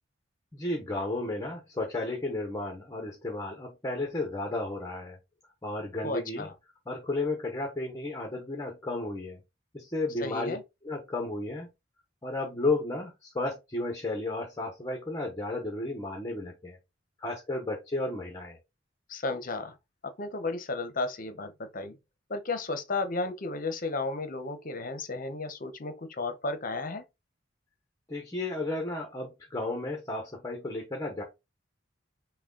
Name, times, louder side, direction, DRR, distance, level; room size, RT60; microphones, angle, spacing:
voice 1, 0.5-5.2 5.6-6.5 6.9-9.4 9.7-10.6 10.8-11.7 12.2-16.8 17.2-18.6 28.1-31.2, left 2 dB, 20° left, 0.9 m, -33 dB
voice 2, 6.0-6.5 10.2-10.6 19.1-19.8 20.0-22.0 22.3-27.0, left 3 dB, 45° left, 0.9 m, -33 dB
5.9 x 2.3 x 3.8 m
head